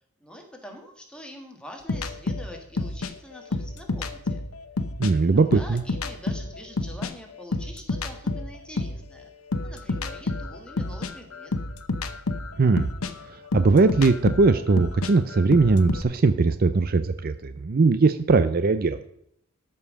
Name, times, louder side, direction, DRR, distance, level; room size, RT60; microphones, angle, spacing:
voice 1, 0.2-4.4 5.2-9.3 9.6-11.5, left 1 dB, 5° left, 2 dB, 1.7 m, -44 dB
sound 1, 1.9-5.1 5.5-9.1 9.5-16.0, left 2 dB, 85° left, 0.9 m, -30 dB
voice 2, 5.0-5.8 12.6-12.9 13.5-19.0, right 3 dB, 45° right, 11 dB, 0.5 m, -20 dB
12.5 x 5.5 x 6.3 m, 0.73 s
head